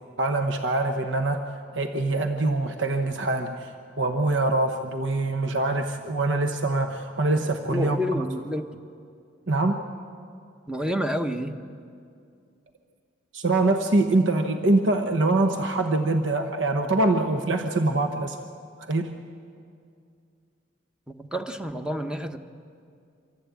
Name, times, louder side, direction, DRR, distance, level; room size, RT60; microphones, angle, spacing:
voice 1, 0.2-3.7 4.0-8.2 9.5-9.9 13.3-18.4 18.9-19.1, right 2 dB, 75° right, 6 dB, 1.0 m, -24 dB
voice 2, 7.7-8.6 10.7-11.6 21.1-22.4, equal, 5° right, 7 dB, 0.9 m, -29 dB
25.0 x 15.0 x 8.3 m, 2.4 s
head